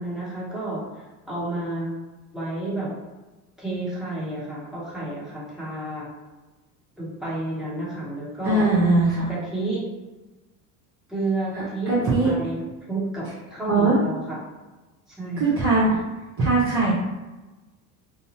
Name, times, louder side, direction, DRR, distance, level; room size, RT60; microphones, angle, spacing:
voice 1, 0.0-2.0 2.3-2.9 3.6-6.1 7.0-8.6 9.3-9.8 11.1-12.6 12.9-14.4 15.2-15.4, right 2 dB, ahead, -8 dB, 1.1 m, -30 dB
voice 2, 8.4-9.3 11.5-12.3 13.7-14.0 15.4-16.0 16.4-16.9, right 2 dB, 30° right, -7 dB, 0.7 m, -20 dB
2.6 x 2.0 x 2.8 m, 1.1 s
supercardioid pair, 100°, 46 cm